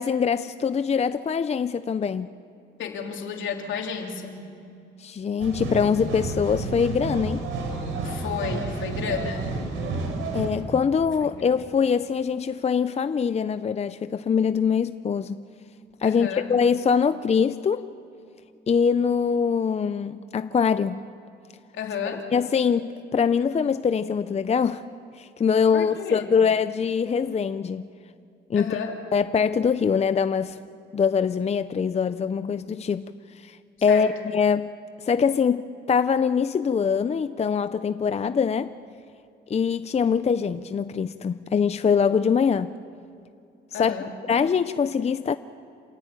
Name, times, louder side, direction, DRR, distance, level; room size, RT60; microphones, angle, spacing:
voice 1, 0.0-2.3 5.0-7.5 10.3-15.4 16.0-17.9 18.7-21.0 22.3-24.8 25.2-27.9 28.5-28.8 29.1-30.6 30.9-33.1 33.3-34.7 35.0-38.7 39.5-42.7 43.7-43.9 44.3-45.4, left 6 dB, 35° left, 12 dB, 0.6 m, -23 dB
voice 2, 2.8-4.5 8.0-9.5 11.4-11.5 16.1-16.4 21.7-22.2 25.7-26.3 28.5-29.0 33.9-34.1 43.7-44.1, left 7 dB, 75° left, 2 dB, 3.4 m, -32 dB
sound 1, 5.4-10.5, right 3 dB, 85° right, 4.2 m, -30 dB
27.5 x 16.5 x 9.0 m, 2.6 s
cardioid pair, 90°, 20 cm